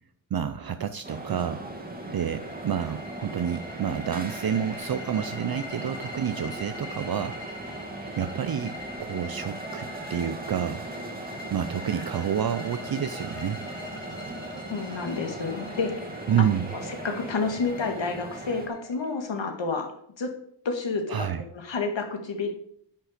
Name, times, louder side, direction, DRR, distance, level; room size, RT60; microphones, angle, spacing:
voice 1, 0.3-1.6 2.1-7.4 8.2-10.8 11.5-13.6 16.3-16.7 21.1-21.4, right 8 dB, 50° right, 10 dB, 0.6 m, -29 dB
sound 1, 1.0-18.7, right 2 dB, 20° right, 2.0 m, -39 dB
sound 2, 1.9-19.6, left 2 dB, 10° left, 2.4 m, -43 dB
voice 2, 14.7-16.1 17.0-19.9 20.2-20.3 20.7-21.3 21.5-22.5, left 4 dB, 70° left, 4 dB, 1.9 m, -29 dB
10.0 x 9.1 x 5.0 m, 0.68 s
wide cardioid pair, 175°, 47 cm